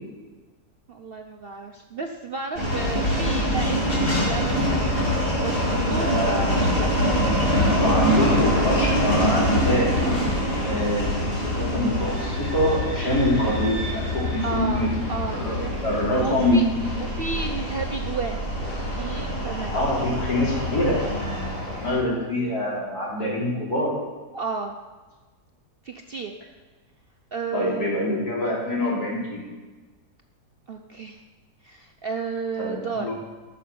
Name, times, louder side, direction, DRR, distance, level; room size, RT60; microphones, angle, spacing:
voice 1, 0.9-6.9 14.4-15.8 16.2-16.6 17.0-18.4 18.9-19.8 24.3-24.7 25.8-26.3 27.3-27.9 30.7-31.2 31.6-33.1, right 4 dB, 55° right, 4 dB, 0.7 m, -32 dB
sound 1, 2.6-22.0, equal, 35° left, 2.9 m, -25 dB
voice 2, 5.9-6.5 7.5-9.9 10.6-14.9 15.4-16.6 19.7-21.5 21.8-23.9 27.5-29.4 32.6-33.1, left 1 dB, 75° left, -4 dB, 4.0 m, -25 dB
13.5 x 6.6 x 6.9 m, 1.3 s
omnidirectional pair, 1.7 m